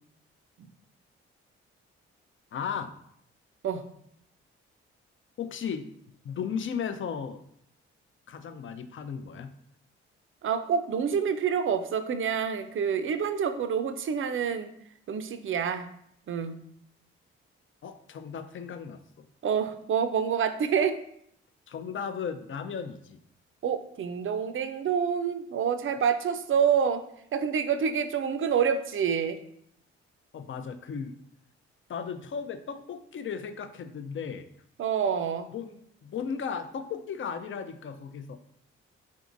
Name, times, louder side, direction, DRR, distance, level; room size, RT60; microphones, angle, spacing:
voice 1, 2.5-2.9 5.4-5.9 6.2-7.4 8.3-9.5 17.8-19.0 21.7-23.2 30.3-31.2 31.9-34.5 35.5-35.8 36.0-38.4, left 6 dB, 40° left, 9 dB, 0.5 m, -35 dB
voice 2, 10.4-14.7 15.1-15.9 16.3-16.6 19.4-21.0 23.6-27.0 27.3-29.4 34.8-35.5, right 7 dB, 40° right, 10 dB, 0.5 m, -27 dB
3.6 x 3.5 x 2.5 m, 0.70 s
hypercardioid pair, 40°, 31 cm